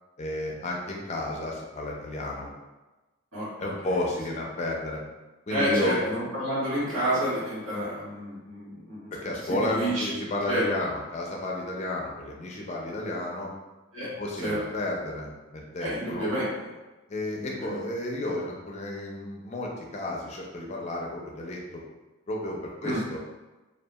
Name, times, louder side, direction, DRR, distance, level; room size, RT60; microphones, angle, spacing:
voice 1, 0.2-2.5 3.6-5.0 5.5-6.0 7.7-7.8 9.2-13.5 14.2-16.3 17.1-21.8 22.3-23.2, left 1 dB, 35° left, -2 dB, 0.4 m, -32 dB
voice 2, 5.5-9.2 9.6-10.1 10.5-10.6 13.9-14.1 14.4-14.6 15.8-16.4 17.3-17.8 22.8-23.0, right 1 dB, 80° right, -10 dB, 1.3 m, -29 dB
2.7 x 2.3 x 2.3 m, 1.1 s
head